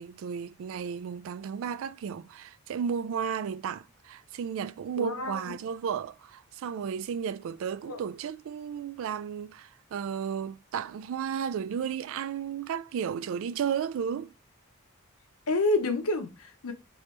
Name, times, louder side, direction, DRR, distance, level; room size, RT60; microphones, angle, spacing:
voice 1, 0.0-14.3, right 7 dB, 65° right, 0.3 m, -33 dB
voice 2, 5.0-5.5 7.9-8.0 15.5-16.7, left 2 dB, 90° left, 0.9 m, -28 dB
3.3 x 3.0 x 4.4 m
head